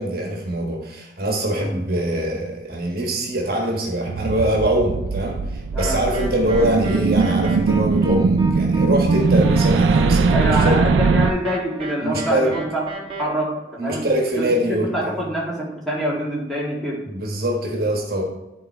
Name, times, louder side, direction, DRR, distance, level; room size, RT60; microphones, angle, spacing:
voice 1, 0.0-10.8 12.0-12.5 13.8-15.2 17.1-18.2, right 1 dB, 55° right, 1 dB, 1.4 m, -23 dB
sound 1, 4.1-11.3, right 4 dB, 85° right, 0.4 m, -20 dB
sound 2, 5.8-13.2, right 2 dB, 30° right, 1.1 m, -32 dB
voice 2, 10.3-12.8 13.2-14.1 14.4-17.0, equal, ahead, -6 dB, 2.1 m, -25 dB
11.0 x 4.0 x 4.4 m, 0.99 s
head